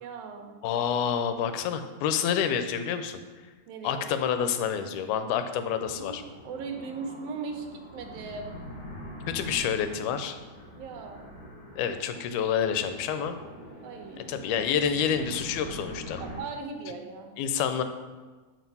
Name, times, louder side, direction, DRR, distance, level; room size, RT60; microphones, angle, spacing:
voice 1, 0.0-0.6 3.7-4.1 6.0-8.5 10.7-11.3 13.8-14.3 16.2-17.3, right 4 dB, 75° right, 3 dB, 1.5 m, -38 dB
voice 2, 0.6-3.2 3.8-6.2 9.3-10.4 11.8-13.3 14.3-16.2 17.4-17.8, left 8 dB, 85° left, 9 dB, 2.1 m, -28 dB
sound 1, 5.7-16.4, equal, 55° left, 2.7 m, -44 dB
6.2 x 4.4 x 5.3 m, 1.3 s
omnidirectional pair, 3.5 m